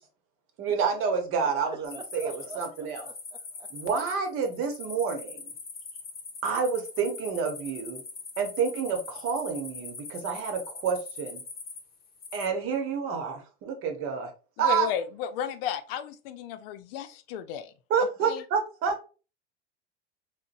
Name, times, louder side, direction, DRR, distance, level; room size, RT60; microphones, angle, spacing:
voice 1, 0.6-3.0 3.7-5.5 6.4-8.0 8.4-11.4 12.3-14.3 14.6-14.9 17.9-19.0, right 6 dB, 45° right, 0.9 m, -29 dB
voice 2, 1.7-3.7, right 4 dB, 15° right, 0.5 m, -45 dB
sound 1, 1.8-12.5, left 4 dB, 30° left, 0.8 m, -42 dB
voice 3, 14.6-17.7 18.2-18.4, left 9 dB, 70° left, 0.5 m, -33 dB
3.8 x 2.1 x 2.5 m
hypercardioid pair, 95°, 29 cm